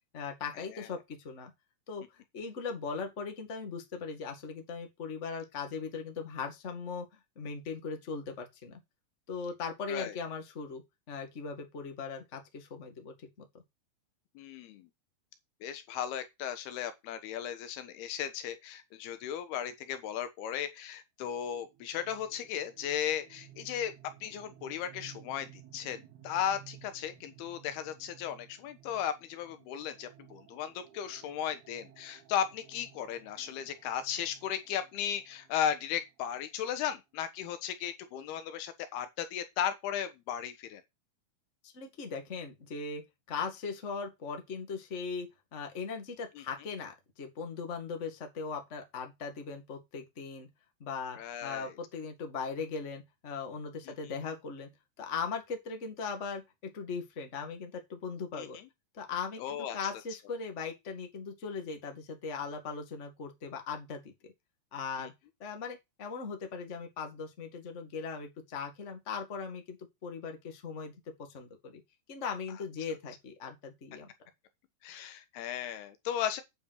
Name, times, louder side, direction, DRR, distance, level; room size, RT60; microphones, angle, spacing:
voice 1, 0.1-1.5 1.9-7.0 7.3-8.8 9.3-10.8 11.1-13.4 41.7-50.5 50.8-54.7 55.0-56.4 56.7-58.6 58.9-64.3 64.7-65.1 65.4-69.8 70.0-70.9 71.3-71.8 72.1-74.1, left 5 dB, 30° left, 1.5 m, -39 dB
voice 2, 14.4-14.9 15.6-23.9 24.2-26.0 26.2-40.8 46.4-46.5 51.2-51.7 53.9-54.1 58.3-58.7 59.4-59.8 65.0-65.1 74.8-76.4, left 9 dB, 85° left, 3.2 m, -36 dB
sound 1, 21.6-37.2, right 11 dB, 80° right, 3.4 m, -57 dB
9.0 x 6.0 x 6.4 m
omnidirectional pair, 4.4 m